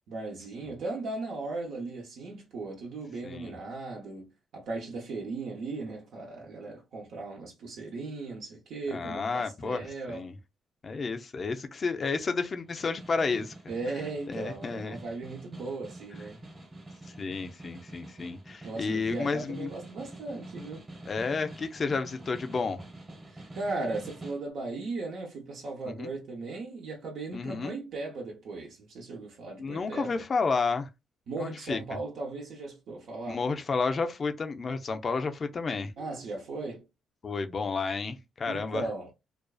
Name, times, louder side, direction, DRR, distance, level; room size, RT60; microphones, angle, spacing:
voice 1, 0.1-10.3 13.7-16.4 18.6-20.8 23.3-30.2 31.3-33.4 36.0-36.9 38.5-39.1, right 3 dB, 70° right, 0.7 m, -37 dB
voice 2, 3.2-3.5 8.9-9.8 10.1-10.3 10.8-13.5 14.3-15.0 17.2-19.7 21.1-22.8 25.9-26.1 27.3-27.7 29.6-30.9 31.4-31.8 33.3-35.9 37.2-38.8, left 4 dB, 40° left, 0.4 m, -31 dB
Snare drum, 12.6-24.5, right 1 dB, 30° right, 1.0 m, -47 dB
2.5 x 2.3 x 2.3 m
cardioid pair, 90°, 0 cm